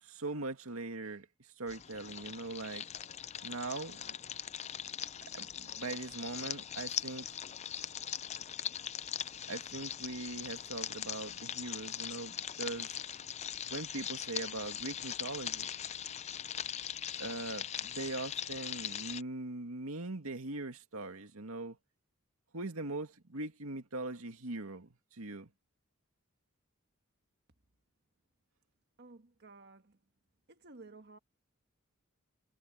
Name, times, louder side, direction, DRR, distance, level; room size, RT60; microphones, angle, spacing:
voice 1, 0.0-1.3 1.6-2.9 3.4-4.2 5.3-7.3 9.5-12.9 13.7-15.7 17.2-21.8 22.5-25.5, right 2 dB, 90° right, 2.2 m, -41 dB
sound 1, 1.7-19.2, left 9 dB, 30° left, 0.5 m, -41 dB
voice 2, 29.0-30.0 30.5-31.2, right 3 dB, 50° right, 1.6 m, -54 dB
head